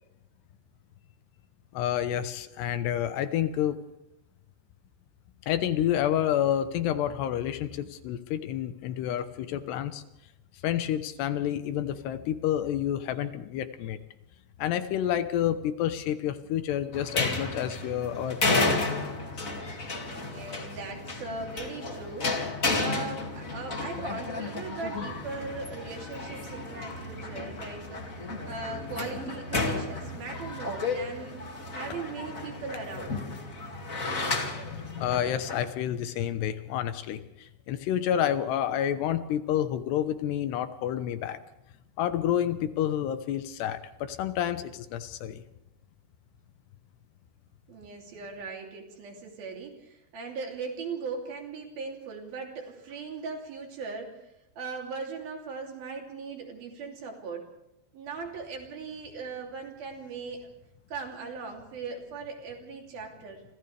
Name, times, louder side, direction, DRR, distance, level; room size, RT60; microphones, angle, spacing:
voice 1, 1.7-3.8 5.5-10.0 10.6-14.0 14.6-19.0 34.6-41.4 42.0-45.4, left 10 dB, 75° left, 10 dB, 3.1 m, -29 dB
sound 1, 16.9-35.7, left 3 dB, 30° left, 1.7 m, -32 dB
voice 2, 20.1-31.4 31.7-33.2 47.7-54.3 54.6-57.5 57.9-60.5 60.9-63.4, right 4 dB, 60° right, 1 dB, 4.7 m, -39 dB
30.0 x 26.0 x 3.4 m, 0.91 s
omnidirectional pair, 5.0 m